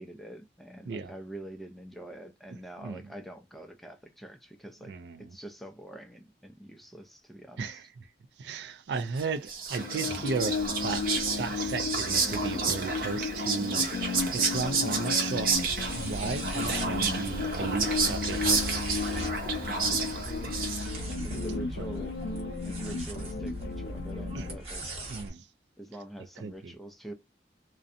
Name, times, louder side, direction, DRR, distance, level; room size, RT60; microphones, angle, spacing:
voice 1, 0.0-7.8 16.8-17.0 20.2-20.7 21.2-22.1 22.5-24.8 25.8-27.1, right 1 dB, ahead, 0.3 m, -45 dB
voice 2, 2.5-3.0 4.9-5.4 7.6-8.1 8.4-10.6 10.8-11.0 11.4-13.9 14.3-15.6 15.9-18.7 19.7-20.2 21.8-21.9 24.3-24.5 25.1-25.5 26.4-26.7, right 5 dB, 75° right, 0.4 m, -35 dB
Whispering, 9.2-21.1, right 5 dB, 55° right, 0.7 m, -31 dB
sound 1, 9.8-24.6, left 4 dB, 65° left, 0.4 m, -34 dB
sound 2, 15.5-25.3, right 1 dB, 35° right, 1.0 m, -40 dB
2.6 x 2.1 x 2.4 m
head